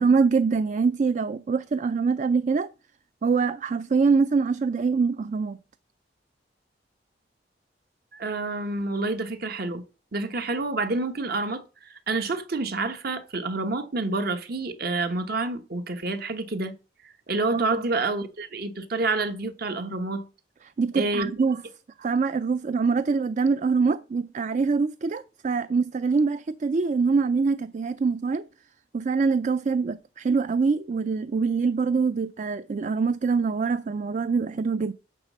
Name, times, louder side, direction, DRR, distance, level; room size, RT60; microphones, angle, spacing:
voice 1, 0.0-2.7 3.2-5.6 17.5-17.8 20.8-21.6 22.0-28.4 28.9-34.9, right 4 dB, 45° right, 0.4 m, -24 dB
voice 2, 8.1-9.8 10.1-16.7 17.3-20.2 20.9-21.3, right 3 dB, 60° right, 1.1 m, -28 dB
10.5 x 4.1 x 7.3 m
head